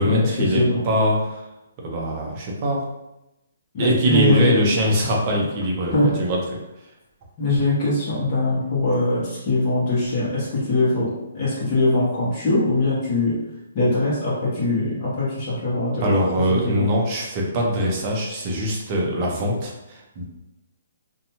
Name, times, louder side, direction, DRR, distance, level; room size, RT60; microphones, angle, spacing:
voice 1, 0.0-1.4 1.8-2.8 3.8-6.4 16.0-20.2, equal, 25° right, -2 dB, 0.6 m, -22 dB
voice 2, 3.7-4.5 5.9-6.1 7.4-11.1 11.3-13.4 13.7-16.1 16.5-16.9, left 2 dB, 30° left, -9 dB, 0.9 m, -22 dB
2.6 x 2.2 x 2.9 m, 0.93 s
hypercardioid pair, 165°, 0 cm